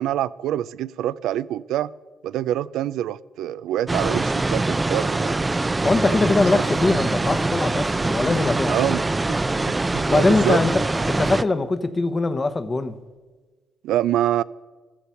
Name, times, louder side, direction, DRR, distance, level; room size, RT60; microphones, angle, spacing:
voice 1, 0.0-1.9 2.2-5.4 6.1-6.2 6.5-6.6 8.7-9.0 9.3-9.4 9.7-10.6 13.8-14.4, right 12 dB, 85° right, 0.4 m, -25 dB
sound 1, 3.9-11.4, right 2 dB, 20° right, 0.5 m, -23 dB
voice 2, 5.8-8.8 10.1-10.8 11.1-13.0, left 3 dB, 30° left, 1.0 m, -22 dB
15.0 x 12.5 x 5.8 m
cardioid pair, 90°, 0 cm